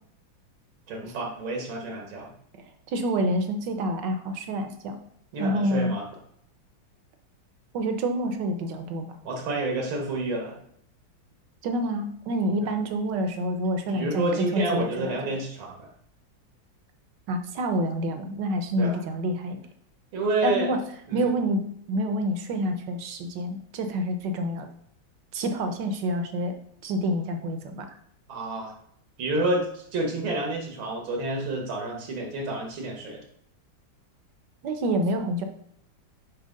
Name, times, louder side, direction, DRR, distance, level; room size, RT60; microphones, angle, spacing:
voice 1, 0.9-2.3 5.3-6.0 9.2-10.6 12.6-12.7 13.9-15.9 18.8-19.0 20.1-20.7 21.1-21.3 28.3-28.7 29.2-33.2, right 2 dB, 85° right, 0 dB, 2.0 m, -29 dB
voice 2, 2.9-5.0 5.4-6.0 7.7-9.1 11.6-15.3 17.3-19.6 20.4-20.8 21.1-24.7 25.3-26.5 26.8-27.9 34.6-35.4, right 1 dB, 65° right, 6 dB, 1.3 m, -27 dB
7.5 x 2.9 x 5.2 m, 0.69 s
omnidirectional pair, 2.2 m